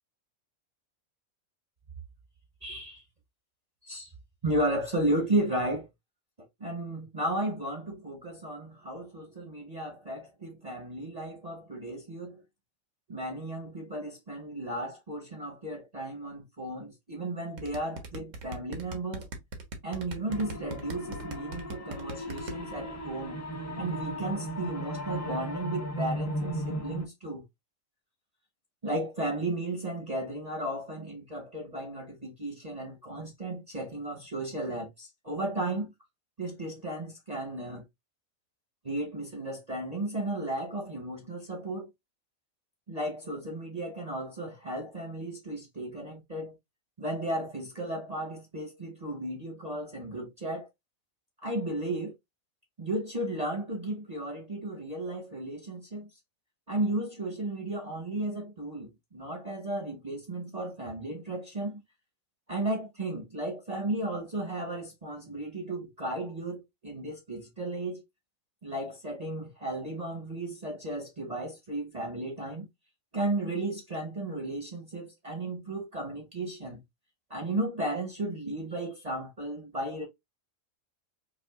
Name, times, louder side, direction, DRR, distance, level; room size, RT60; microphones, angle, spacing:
voice 1, 2.6-3.0 3.8-4.1 4.4-5.9 6.6-12.4 13.1-19.3 19.8-23.4 23.8-27.4 28.8-35.9 36.4-37.8 38.8-41.9 42.9-46.6 47.0-50.7 51.4-52.1 52.8-56.1 56.7-61.8 62.5-68.0 68.6-72.7 73.1-76.8 77.3-80.1, right 1 dB, 30° right, 0.9 m, -34 dB
sound 1, 17.6-22.5, right 2 dB, 65° right, 1.2 m, -38 dB
sound 2, 20.3-27.1, equal, 25° left, 0.3 m, -36 dB
5.0 x 2.4 x 2.3 m
omnidirectional pair, 1.4 m